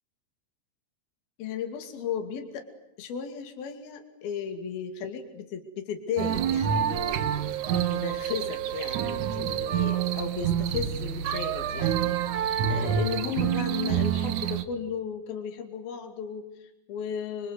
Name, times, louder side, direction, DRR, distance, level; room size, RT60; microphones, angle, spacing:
voice 1, 1.4-2.7 3.0-7.2 7.7-12.1 12.7-17.5, left 7 dB, 65° left, 6 dB, 4.2 m, -35 dB
sound 1, 6.2-14.6, right 9 dB, 65° right, 2.1 m, -27 dB
27.5 x 25.5 x 8.2 m, 0.89 s
omnidirectional pair, 4.8 m